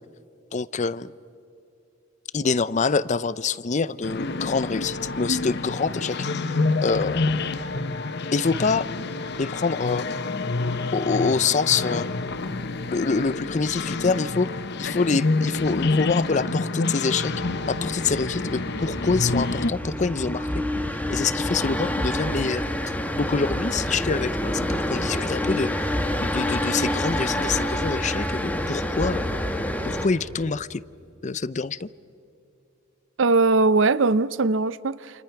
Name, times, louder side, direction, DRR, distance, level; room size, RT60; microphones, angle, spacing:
voice 1, 0.5-1.1 2.3-6.2 6.8-7.3 8.3-8.9 9.4-10.1 10.9-12.1 12.9-17.3 17.7-20.5 21.1-22.6 23.2-29.2 29.8-30.8 31.2-31.9, left 4 dB, 35° left, 0.5 m, -26 dB
sound 1, 4.0-19.7, left 3 dB, 55° left, 0.9 m, -28 dB
sound 2, 17.3-30.1, left 1 dB, 10° left, 1.4 m, -27 dB
voice 2, 33.2-35.2, right 3 dB, 70° right, 0.6 m, -20 dB
29.0 x 28.5 x 5.9 m
head